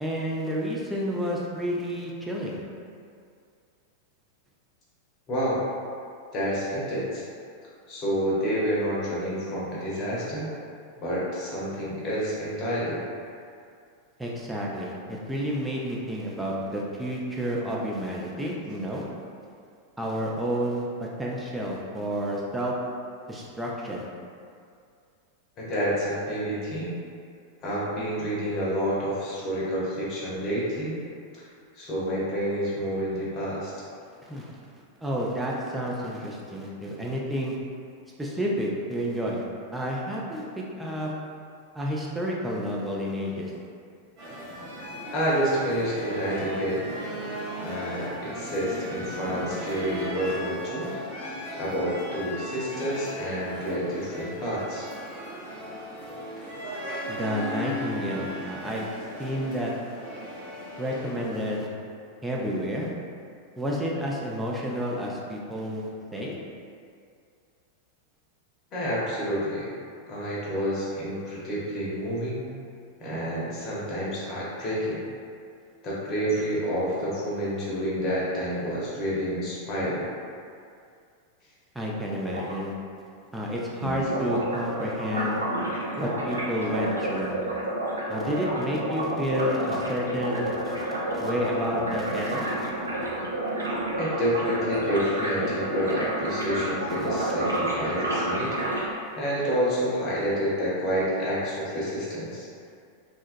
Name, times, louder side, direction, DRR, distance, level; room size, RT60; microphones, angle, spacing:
voice 1, 0.0-2.6 14.2-19.1 20.0-22.7 23.3-24.1 34.2-34.5 35.0-37.6 38.2-39.4 39.7-41.1 41.7-43.5 57.1-58.9 59.2-59.7 60.8-61.7 62.2-62.9 63.6-66.4 81.7-82.7 83.3-85.4 86.0-87.3 88.1-92.7 97.4-97.6, equal, 5° right, -4 dB, 0.4 m, -30 dB
voice 2, 5.3-5.6 6.3-7.2 7.9-10.5 11.0-13.0 25.6-27.0 27.6-31.0 31.3-31.4 31.7-33.7 45.1-46.8 47.6-50.9 51.2-51.3 51.6-54.9 68.7-69.7 70.1-72.5 73.0-75.0 75.8-80.0 94.0-98.5 99.2-102.5, equal, 35° left, -7 dB, 0.8 m, -29 dB
sound 1, 44.2-61.6, equal, 40° right, 0.9 m, -37 dB
sound 2, 82.3-82.6 83.8-98.8, right 1 dB, 80° right, 0.4 m, -30 dB
2.8 x 2.3 x 2.5 m, 2.3 s
figure-of-eight pair, 90°, 0 cm